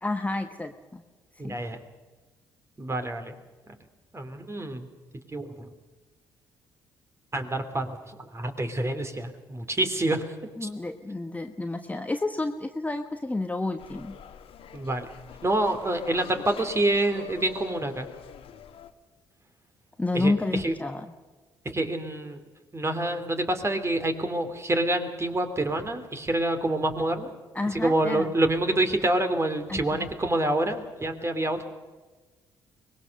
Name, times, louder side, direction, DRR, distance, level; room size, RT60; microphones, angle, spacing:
voice 1, 0.0-1.0 1.4-1.6 10.6-14.2 20.0-21.1 27.5-28.3 29.7-30.0, left 2 dB, 15° left, 6 dB, 1.2 m, -30 dB
voice 2, 1.4-1.8 2.8-3.3 4.1-4.9 5.3-5.7 7.3-8.0 8.3-10.3 10.6-10.7 14.7-15.1 15.4-18.1 20.1-20.7 21.6-22.4 22.7-27.3 27.7-31.6, right 1 dB, 25° right, 7 dB, 3.0 m, -27 dB
sound 1, 13.8-18.9, left 9 dB, 55° left, 1.5 m, -44 dB
24.0 x 20.5 x 6.6 m, 1.3 s
figure-of-eight pair, 45°, 11 cm